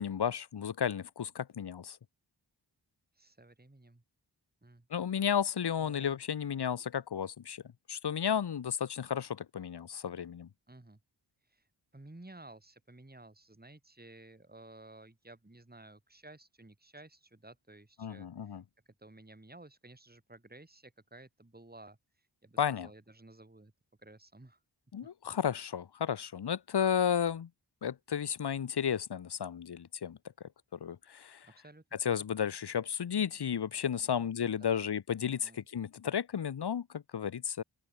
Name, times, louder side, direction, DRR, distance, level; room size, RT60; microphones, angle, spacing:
voice 1, 0.0-2.0 4.9-7.6 7.9-10.5 18.0-18.6 22.6-22.9 24.9-27.5 27.8-30.2 30.7-31.5 32.0-37.6, left 8 dB, 60° left, 0.7 m, -33 dB
voice 2, 3.1-4.0 4.6-4.9 5.8-6.2 10.7-11.0 11.5-11.6 11.9-18.6 19.0-22.0 22.4-23.7 24.0-24.6 31.5-31.8 34.1-34.3 34.6-34.9 35.2-35.6, right 2 dB, 20° right, 2.9 m, -54 dB
open air
wide cardioid pair, 65°, 45 cm